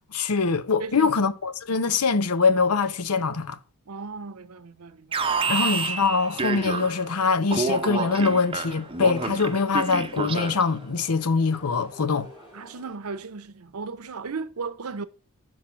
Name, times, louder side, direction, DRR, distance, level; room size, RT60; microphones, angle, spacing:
voice 1, 0.1-3.6 5.5-12.3, left 4 dB, 85° left, 0.7 m, -23 dB
voice 2, 0.8-1.2 3.9-5.6 12.5-15.1, right 4 dB, 80° right, 0.7 m, -36 dB
Alarm, 5.1-7.1 7.5-10.8, right 4 dB, 25° right, 0.6 m, -28 dB
sound 1, 6.1-13.0, left 1 dB, 25° left, 2.8 m, -50 dB
6.1 x 4.6 x 5.6 m
head